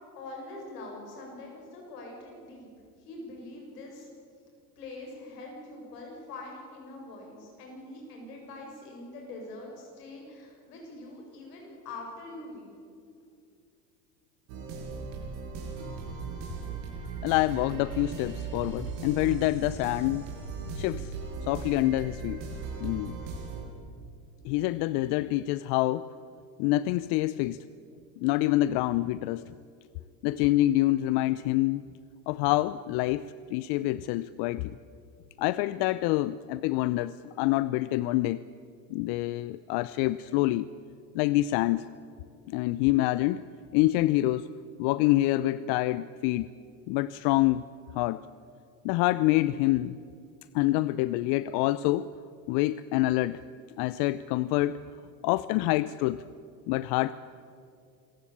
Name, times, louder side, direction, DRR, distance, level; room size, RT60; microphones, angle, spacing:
voice 1, 0.1-2.7 3.0-4.1 4.8-12.7, left 2 dB, 75° left, 0 dB, 7.9 m, -44 dB
sound 1, 14.5-23.6, right 5 dB, 65° right, 7.2 m, -38 dB
voice 2, 17.2-20.2 20.8-21.1 21.5-22.4 22.8-23.2 24.4-26.1 26.6-27.6 28.2-29.5 30.2-31.8 32.3-34.8 35.4-38.4 38.9-40.7 41.1-41.9 42.5-43.4 43.7-44.5 44.8-46.5 46.9-47.6 47.9-48.2 48.8-50.0 50.5-52.1 52.5-53.4 53.8-54.8 55.2-56.2 56.7-57.1, left 17 dB, 55° left, 16 dB, 0.7 m, -26 dB
26.5 x 15.5 x 8.6 m, 2.4 s
hypercardioid pair, 80°, 47 cm